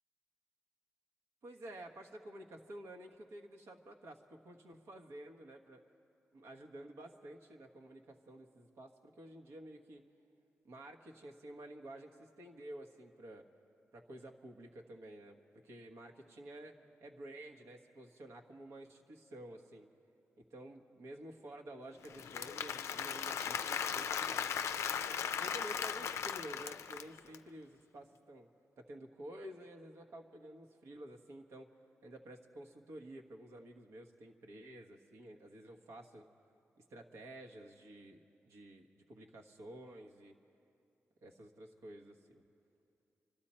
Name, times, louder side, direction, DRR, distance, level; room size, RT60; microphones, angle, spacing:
voice 1, 1.4-5.8 6.3-10.0 10.6-13.4 13.9-15.4 15.6-19.9 20.5-24.8 25.4-28.5 28.8-31.7 32.0-36.2 36.9-40.3 41.2-42.4, right 1 dB, 80° right, 2 dB, 1.2 m, -51 dB
Applause / Crowd, 22.0-27.3, left 8 dB, 80° left, 0.4 m, -37 dB
26.0 x 12.5 x 4.4 m, 2.6 s
cardioid pair, 80°, 5 cm